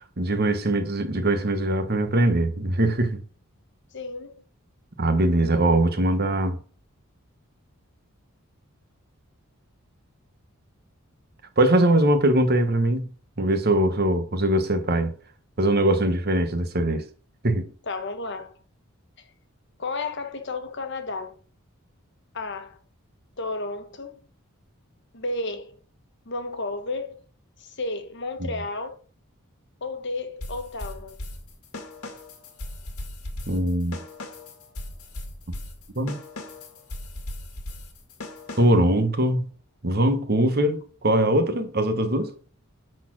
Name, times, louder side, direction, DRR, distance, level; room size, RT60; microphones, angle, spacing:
voice 1, 0.2-3.2 5.0-6.6 11.6-13.1 13.4-15.1 15.6-17.0 17.4-17.7 28.4-28.5 33.5-34.0 36.0-36.2 38.6-39.5 39.8-42.3, right 1 dB, 45° right, 1.1 m, -22 dB
voice 2, 3.9-4.4 17.9-18.5 19.8-21.3 22.3-22.8 23.4-24.2 25.1-25.8 26.3-27.2 27.6-29.0 29.8-31.2, left 3 dB, 55° left, 1.3 m, -32 dB
sound 1, 30.4-38.9, left 1 dB, 80° left, 2.0 m, -38 dB
10.5 x 4.3 x 6.1 m
head